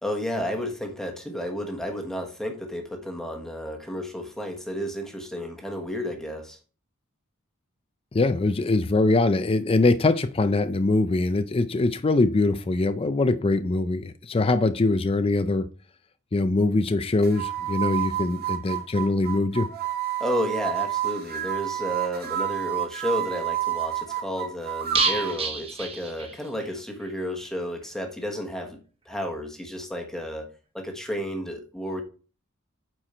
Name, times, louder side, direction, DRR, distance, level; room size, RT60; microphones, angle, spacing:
voice 1, 0.0-6.6 20.2-28.8 29.0-32.0, equal, ahead, 1.2 m, -32 dB
voice 2, 8.1-15.7 16.3-19.7, left 2 dB, 25° left, 0.4 m, -23 dB
sound 1, 17.2-25.4, right 10 dB, 45° right, 1.5 m, -29 dB
sound 2, 24.9-26.7 27.0-27.1 27.4-27.5, right 4 dB, 25° right, 1.0 m, -29 dB
8.9 x 4.6 x 4.3 m
head